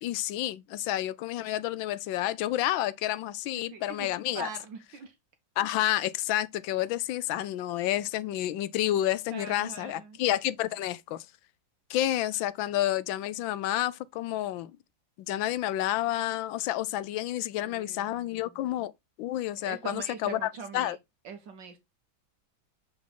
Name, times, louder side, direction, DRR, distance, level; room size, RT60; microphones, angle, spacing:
voice 1, 0.0-4.5 5.6-11.3 11.9-14.7 15.3-18.9 19.2-21.0, left 13 dB, 80° left, 1.3 m, -30 dB
voice 2, 3.7-5.1 9.3-10.2 17.6-18.7 19.6-21.0 21.2-21.8, right 5 dB, 70° right, 1.8 m, -43 dB
7.3 x 4.9 x 3.6 m
omnidirectional pair, 2.2 m